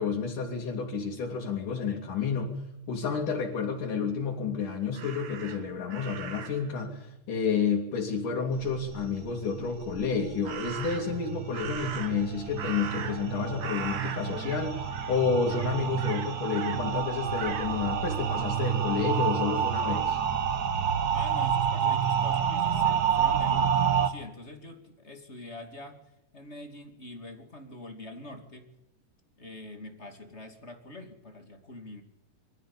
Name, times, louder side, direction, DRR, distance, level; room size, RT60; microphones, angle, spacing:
voice 1, 0.0-2.6 2.9-20.2, left 5 dB, 70° left, -3 dB, 4.4 m, -30 dB
Crow, 4.9-6.7 10.4-11.2 11.5-13.3 13.6-14.6 14.9-15.2 15.5-16.8 17.4-17.7, right 7 dB, 55° right, 1.4 m, -39 dB
sound 1, 8.5-24.1, right 7 dB, 90° right, 0.8 m, -29 dB
voice 2, 20.8-26.0 26.3-28.7 29.4-32.0, left 2 dB, 20° left, 5 dB, 2.5 m, -45 dB
24.5 x 14.0 x 8.6 m, 0.91 s
omnidirectional pair, 3.8 m